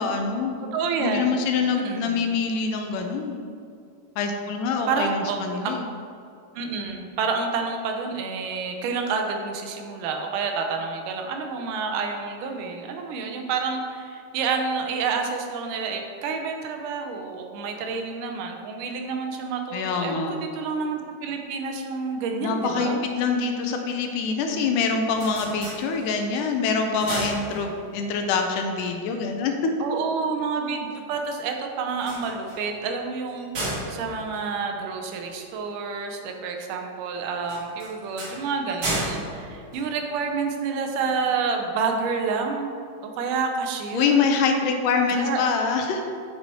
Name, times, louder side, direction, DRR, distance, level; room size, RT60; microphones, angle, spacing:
voice 1, 0.0-0.7 1.0-3.4 4.2-5.9 19.7-20.3 22.4-29.5 43.9-46.0, left 5 dB, 80° left, 4 dB, 2.1 m, -25 dB
voice 2, 0.7-1.3 1.7-2.2 4.9-5.8 6.6-23.0 29.8-33.5 33.9-42.7 43.0-44.2 45.1-45.4, right 5 dB, 80° right, 3 dB, 2.2 m, -29 dB
sound 1, 24.9-26.4 26.8-28.1 31.9-35.3 37.4-40.5, right 1 dB, 40° right, 2.0 m, -34 dB
7.9 x 5.4 x 4.3 m, 2.4 s
omnidirectional pair, 3.8 m